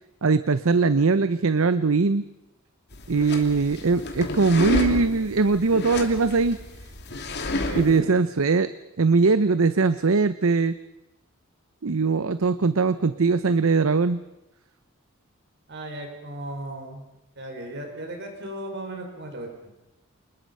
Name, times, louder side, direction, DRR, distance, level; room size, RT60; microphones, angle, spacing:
voice 1, 0.2-2.2 3.1-6.6 7.7-10.8 11.8-14.2, right 4 dB, 75° right, 14 dB, 0.7 m, -21 dB
sound 1, 2.9-8.0, left 2 dB, 55° left, 2.7 m, -31 dB
voice 2, 7.5-8.1 15.7-17.0 17.4-19.5, right 1 dB, 55° right, 3 dB, 5.4 m, -36 dB
27.5 x 20.5 x 5.5 m, 0.93 s
head